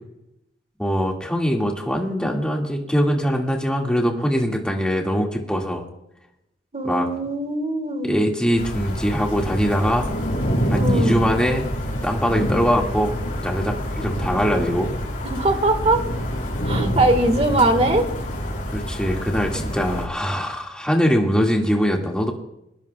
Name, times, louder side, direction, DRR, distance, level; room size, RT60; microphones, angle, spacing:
voice 1, 0.8-5.9 6.8-7.1 8.0-10.1 10.7-11.6 12.0-14.9 18.7-22.3, equal, 5° left, -1 dB, 2.1 m, -22 dB
voice 2, 6.7-8.1 10.7-11.2 15.2-16.0 16.6-18.1, right 2 dB, 35° right, 6 dB, 1.7 m, -21 dB
sound 1, 8.6-20.1, equal, 50° left, 6.6 m, -26 dB
22.5 x 20.0 x 2.4 m, 0.85 s
head